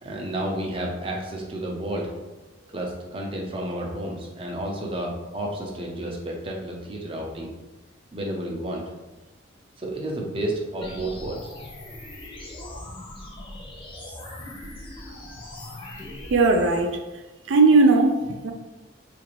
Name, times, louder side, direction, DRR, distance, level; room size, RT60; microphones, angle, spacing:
voice 1, 0.0-2.1 2.7-7.5 8.1-8.8 9.8-11.4, right 1 dB, 30° right, -1 dB, 0.5 m, -31 dB
sound 1, 10.8-16.8, left 1 dB, 25° left, 0.5 m, -40 dB
voice 2, 16.3-17.0 17.5-18.5, right 3 dB, 75° right, 5 dB, 0.4 m, -18 dB
3.9 x 2.5 x 3.0 m, 1.1 s
head